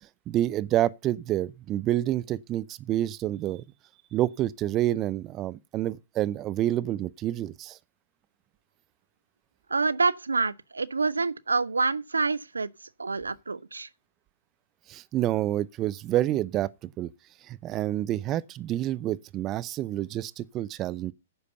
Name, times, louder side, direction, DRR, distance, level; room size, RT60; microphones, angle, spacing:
voice 1, 0.3-3.6 4.1-7.8 14.9-17.1 17.5-21.1, right 13 dB, 30° right, 0.5 m, -28 dB
voice 2, 9.7-13.9, right 4 dB, 85° right, 0.6 m, -27 dB
10.0 x 6.6 x 6.8 m
figure-of-eight pair, 115°, 0 cm